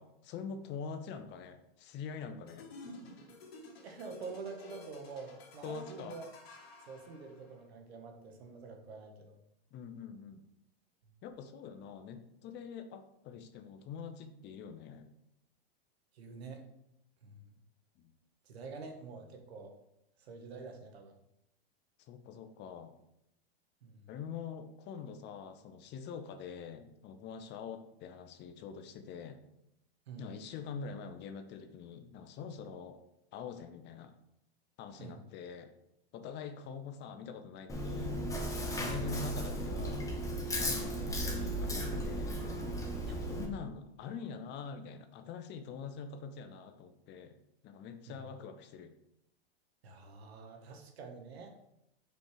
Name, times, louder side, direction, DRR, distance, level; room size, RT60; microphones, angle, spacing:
voice 1, 0.0-3.0 5.6-6.2 9.7-10.4 11.2-15.1 18.0-18.1 22.0-22.9 24.1-29.4 30.2-33.0 33.3-34.1 34.8-35.7 36.1-38.2 38.6-40.1 40.6-42.4 43.1-47.4 47.6-48.9, left 6 dB, 35° left, 8 dB, 0.7 m, -45 dB
sound 1, 2.5-7.6, left 2 dB, 75° left, 2.2 m, -52 dB
voice 2, 3.8-6.3 6.9-9.4 11.1-11.2 16.1-16.6 17.2-17.5 18.4-19.8 20.2-21.2 23.8-24.1 30.1-30.3 35.0-35.2 38.8-38.9 43.1-43.2 48.1-48.2 49.8-51.6, right 4 dB, 80° right, 4 dB, 1.4 m, -47 dB
Chewing mastication, 37.7-43.5, equal, 10° left, 1.1 m, -35 dB
5.2 x 4.4 x 4.9 m, 0.81 s
hypercardioid pair, 125°, 31 cm